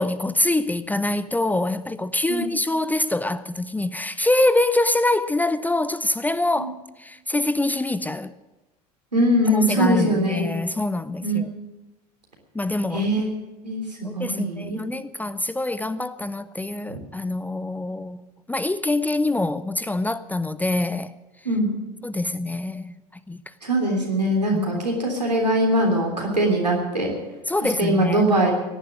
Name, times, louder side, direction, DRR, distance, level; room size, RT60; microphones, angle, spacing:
voice 1, 0.0-8.3 9.5-11.5 12.5-13.1 14.0-21.2 22.0-22.9 23.3-23.4 24.5-24.8 27.5-28.2, left 2 dB, 10° left, 0.5 m, -25 dB
voice 2, 9.1-10.5 11.2-11.4 12.9-13.3 13.6-14.8 16.9-17.0 21.4-21.7 23.6-27.1 27.6-28.5, right 1 dB, 90° right, 3.3 m, -22 dB
17.5 x 11.0 x 6.3 m
figure-of-eight pair, 70°, 20 cm